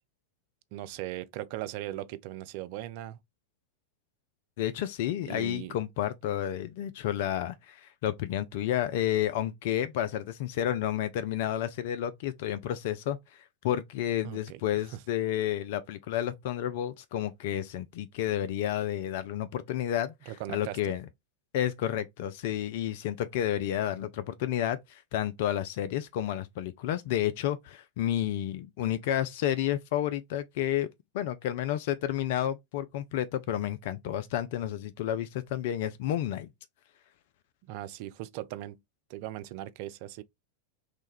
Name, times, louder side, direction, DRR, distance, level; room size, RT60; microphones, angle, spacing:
voice 1, 0.7-3.2 5.3-5.8 14.2-14.6 14.9-15.0 20.3-20.9 37.6-38.8 39.1-40.2, right 14 dB, 45° right, 0.3 m, -39 dB
voice 2, 4.6-21.1 21.5-30.9 31.1-36.5, left 11 dB, 50° left, 0.3 m, -31 dB
3.0 x 2.2 x 3.4 m
figure-of-eight pair, 90°, 0 cm